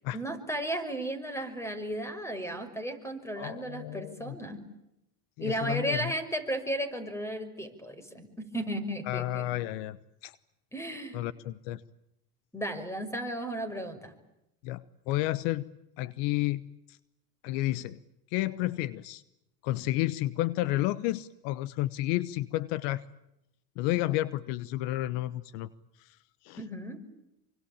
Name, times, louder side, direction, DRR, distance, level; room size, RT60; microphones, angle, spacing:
voice 1, 0.1-4.6 5.4-9.5 10.7-11.2 12.5-14.1 26.6-27.0, right 1 dB, 5° left, 12 dB, 5.9 m, -34 dB
voice 2, 3.4-4.4 5.4-6.1 9.1-10.0 10.2-10.4 11.1-11.8 14.6-15.7 16.0-16.6 16.9-17.0 17.4-18.0 18.3-19.2 19.6-23.0 23.8-25.7 26.0-26.2 26.4-26.6, left 16 dB, 65° left, 17 dB, 1.1 m, -31 dB
27.0 x 24.5 x 8.9 m, 0.87 s
supercardioid pair, 95°, 46 cm